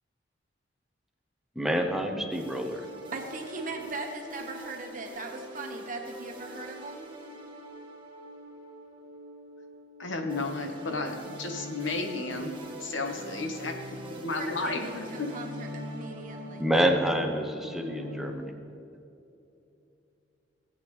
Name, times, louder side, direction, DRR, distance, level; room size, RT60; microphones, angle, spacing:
voice 1, 1.6-2.8 16.6-18.5, equal, ahead, 3 dB, 0.8 m, -27 dB
sound 1, 2.3-18.3, equal, 25° right, 1.3 m, -43 dB
voice 2, 3.1-7.1 14.3-16.7, right 3 dB, 45° right, 2 dB, 1.3 m, -39 dB
voice 3, 10.0-12.5 12.8-13.7 14.2-15.3, left 3 dB, 80° left, 4 dB, 1.2 m, -32 dB
17.0 x 8.5 x 3.2 m, 2.7 s
head